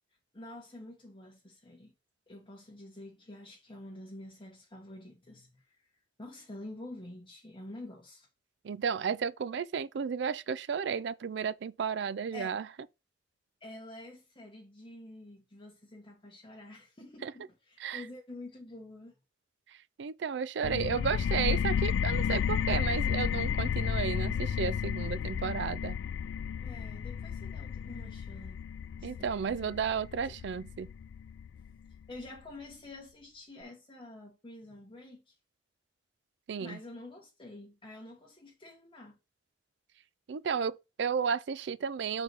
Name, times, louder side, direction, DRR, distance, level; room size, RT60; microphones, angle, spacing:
voice 1, 0.3-1.9 2.3-5.9 6.2-8.3 12.3-12.5 13.6-19.1 26.6-28.6 29.0-29.3 30.2-30.3 32.1-35.3 36.6-39.2, left 2 dB, 30° left, 1.2 m, -48 dB
voice 2, 8.6-12.6 17.2-17.3 17.8-18.0 20.0-26.0 29.0-30.9 36.5-36.8 40.3-42.2, right 6 dB, 70° right, 0.4 m, -33 dB
sound 1, 20.6-32.0, left 7 dB, 90° left, 0.3 m, -32 dB
5.9 x 4.0 x 4.6 m
head